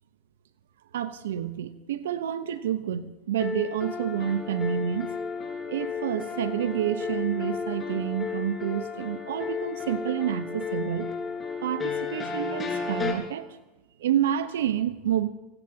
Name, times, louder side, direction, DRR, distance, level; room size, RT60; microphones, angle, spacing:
voice 1, 0.9-5.1 5.7-11.1 11.6-13.5 14.0-15.3, right 10 dB, 75° right, 12 dB, 0.9 m, -29 dB
sound 1, 3.4-13.1, left 6 dB, 25° left, 5.1 m, -33 dB
24.5 x 18.5 x 2.9 m, 1.1 s
hypercardioid pair, 90°, 0 cm